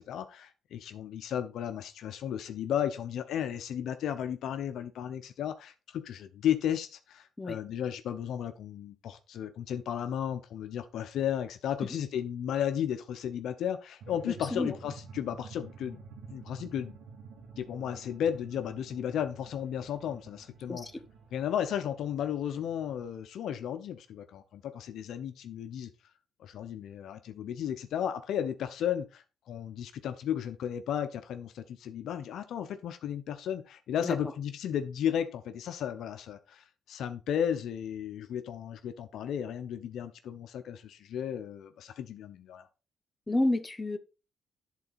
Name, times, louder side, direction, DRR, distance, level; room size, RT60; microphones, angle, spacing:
voice 1, 0.0-16.0 16.3-17.0 17.6-20.8 21.3-25.9 26.4-42.7, left 9 dB, 75° left, 0.8 m, -34 dB
sound 1, 14.0-23.2, right 5 dB, 75° right, 2.3 m, -50 dB
voice 2, 20.7-21.0 34.0-34.2 43.3-44.0, left 1 dB, 15° left, 1.0 m, -30 dB
11.0 x 4.0 x 4.1 m
cardioid pair, 90°, 0 cm